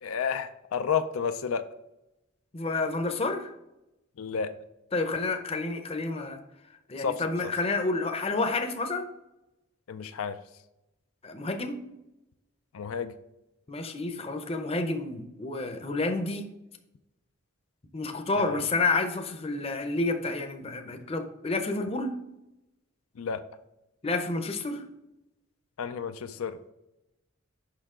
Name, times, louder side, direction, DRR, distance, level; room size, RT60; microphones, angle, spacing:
voice 1, 0.0-1.6 4.2-4.5 7.0-7.2 9.9-10.4 12.7-13.1 18.4-18.6 23.2-23.4 25.8-26.6, left 6 dB, 85° left, 0.5 m, -31 dB
voice 2, 2.5-3.5 4.9-6.4 6.9-9.1 11.2-11.8 13.7-16.5 17.9-22.2 24.0-24.8, left 3 dB, 30° left, 0.6 m, -29 dB
6.6 x 5.7 x 3.7 m
head